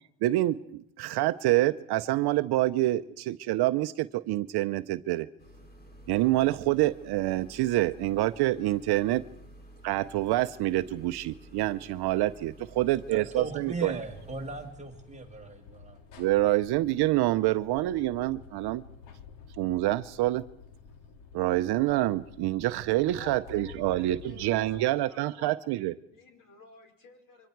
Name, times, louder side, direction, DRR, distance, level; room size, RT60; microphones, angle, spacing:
voice 1, 0.2-5.3 6.1-9.2 9.8-13.9 16.2-18.8 19.6-20.4 21.3-26.0, right 16 dB, 50° right, 11 dB, 0.7 m, -27 dB
sound 1, 5.4-14.7, right 1 dB, 20° left, 3.5 m, -51 dB
voice 2, 13.1-16.0, right 3 dB, 15° right, 3 dB, 1.8 m, -38 dB
sound 2, 13.9-24.8, left 6 dB, 60° left, 2.2 m, -50 dB
voice 3, 23.1-25.6 26.1-27.5, left 3 dB, 40° left, 4 dB, 5.2 m, -51 dB
28.0 x 24.0 x 4.7 m, 0.75 s
cardioid pair, 135°, 50 cm